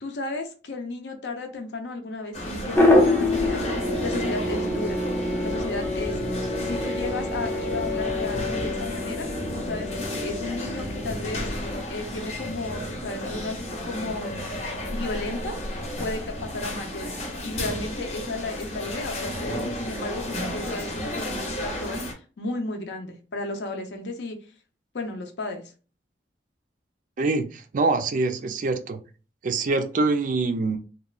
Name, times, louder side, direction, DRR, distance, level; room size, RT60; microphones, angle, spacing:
voice 1, 0.0-3.6 4.0-5.0 5.4-6.2 6.6-11.5 11.9-14.4 14.9-15.6 16.0-17.2 17.4-24.4 24.9-25.6, left 2 dB, 70° left, 0.6 m, -34 dB
sound 1, 2.3-22.1, equal, 35° left, 0.8 m, -33 dB
sound 2, 2.7-11.8, left 2 dB, 10° left, 0.4 m, -26 dB
Wind instrument woodwind instrument, 4.2-8.5, right 4 dB, 90° left, 0.9 m, -44 dB
voice 2, 27.2-29.0 29.4-30.8, right 3 dB, 45° right, 0.4 m, -24 dB
2.9 x 2.2 x 2.3 m
head